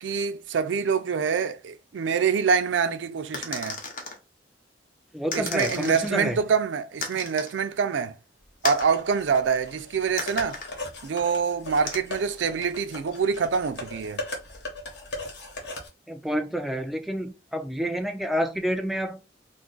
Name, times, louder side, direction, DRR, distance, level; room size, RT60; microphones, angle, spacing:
voice 1, 0.0-3.8 5.3-8.2 8.6-10.6 11.0-14.2, right 6 dB, 85° right, 0.4 m, -25 dB
sound 1, 3.3-4.2 5.3-6.1 7.0-7.5 8.6-8.9 10.2-10.7 11.9-12.0, left 3 dB, 45° left, 0.7 m, -33 dB
voice 2, 5.1-6.4 16.1-19.2, equal, ahead, 0.3 m, -28 dB
sound 2, 8.7-15.9, left 2 dB, 70° left, 1.0 m, -39 dB
2.6 x 2.4 x 3.8 m
head